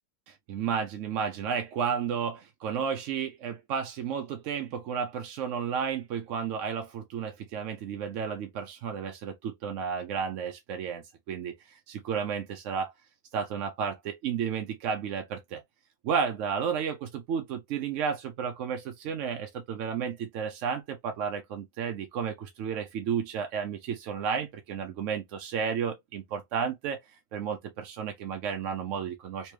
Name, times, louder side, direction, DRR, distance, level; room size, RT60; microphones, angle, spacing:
voice 1, 0.3-12.9 13.3-15.6 16.0-29.5, right 7 dB, 75° right, 0.9 m, -32 dB
3.1 x 2.9 x 3.1 m
omnidirectional pair, 1.3 m